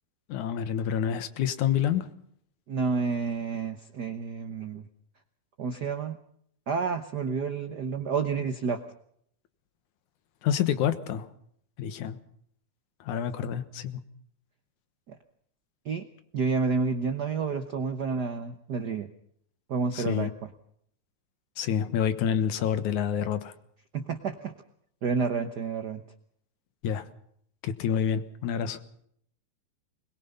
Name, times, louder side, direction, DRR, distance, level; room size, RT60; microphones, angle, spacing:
voice 1, 0.3-2.1 10.4-11.3 11.8-12.2 13.1-14.0 19.9-20.3 21.6-23.5 26.8-27.0 27.6-28.8, left 9 dB, 80° left, 12 dB, 2.7 m, -28 dB
voice 2, 2.7-4.8 5.6-6.2 6.7-8.8 15.1-15.2 15.8-16.1 16.3-19.1 19.7-20.3 23.9-24.5 25.0-26.0, right 5 dB, 80° right, 8 dB, 0.9 m, -29 dB
21.5 x 21.5 x 5.6 m, 0.67 s
omnidirectional pair, 3.4 m